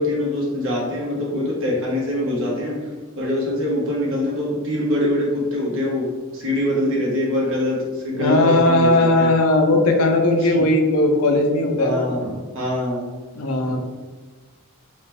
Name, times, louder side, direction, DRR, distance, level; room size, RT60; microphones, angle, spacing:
voice 1, 0.0-2.8 3.2-9.3 10.4-10.6 11.8-12.2 12.5-13.0 13.7-13.8, left 1 dB, 65° right, -4 dB, 1.1 m, -23 dB
voice 2, 8.1-12.1 13.4-13.8, left 2 dB, 75° left, 3 dB, 0.6 m, -18 dB
3.3 x 2.9 x 3.3 m, 1.3 s
head